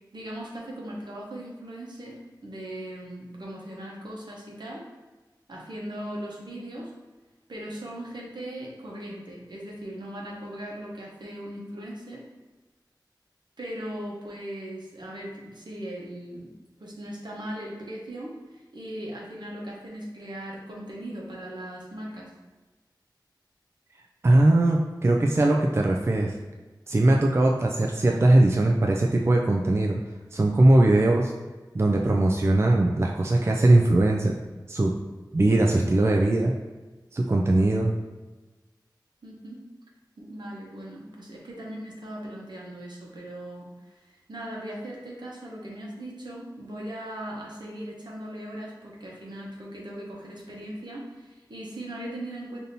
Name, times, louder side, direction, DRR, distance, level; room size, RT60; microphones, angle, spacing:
voice 1, 0.1-4.8 5.5-6.9 7.5-12.2 13.6-16.5 16.8-22.3 39.2-39.6 40.2-52.6, right 1 dB, 70° right, -3 dB, 0.9 m, -39 dB
voice 2, 24.2-26.3 26.9-30.0 30.3-31.3 31.7-34.4 34.7-34.9 35.3-36.5 37.1-37.9, right 1 dB, 35° right, 0 dB, 0.3 m, -20 dB
5.1 x 2.7 x 2.7 m, 1.2 s
wide cardioid pair, 55°, 8 cm